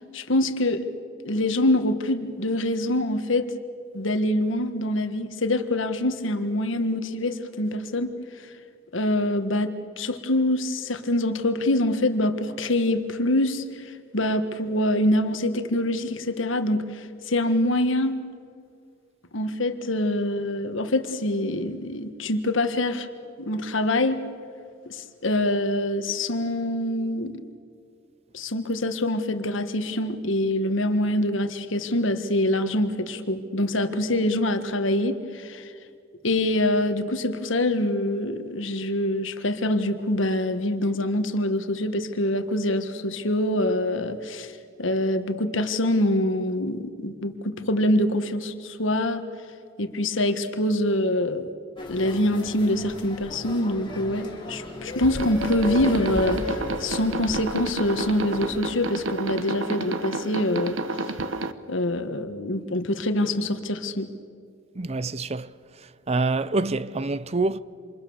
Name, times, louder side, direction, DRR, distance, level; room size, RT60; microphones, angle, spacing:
voice 1, 0.1-0.8 1.2-3.5 3.9-8.1 8.9-18.2 19.3-23.1 23.4-24.2 24.8-27.4 28.3-35.7 36.2-44.5 44.8-49.2 49.8-51.5 51.9-60.8 61.7-64.1, left 1 dB, 75° left, 1.6 m, -25 dB
sound 1, 51.8-58.6, left 1 dB, 25° left, 4.6 m, -35 dB
sound 2, 55.0-61.5, right 2 dB, 80° right, 1.2 m, -31 dB
voice 2, 64.8-65.5 66.1-67.6, right 3 dB, 35° right, 0.6 m, -26 dB
28.0 x 27.0 x 7.2 m
head